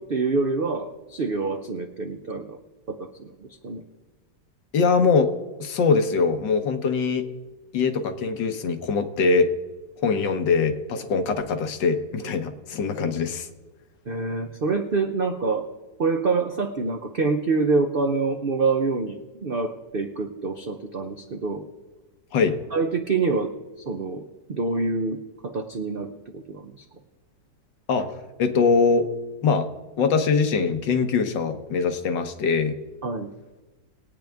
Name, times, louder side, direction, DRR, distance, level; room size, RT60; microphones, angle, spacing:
voice 1, 0.0-2.6 2.9-3.3 3.6-3.8 14.1-15.7 16.0-21.6 22.7-23.5 23.9-24.2 24.5-25.2 25.4-26.7 33.0-33.3, right 4 dB, 60° right, 5 dB, 0.6 m, -26 dB
voice 2, 4.7-5.3 5.6-7.3 7.7-9.5 10.0-13.5 22.3-22.6 27.9-29.1 29.4-29.7 30.0-32.8, left 4 dB, 75° left, 8 dB, 1.7 m, -22 dB
21.5 x 9.0 x 3.5 m, 1.2 s
omnidirectional pair, 2.0 m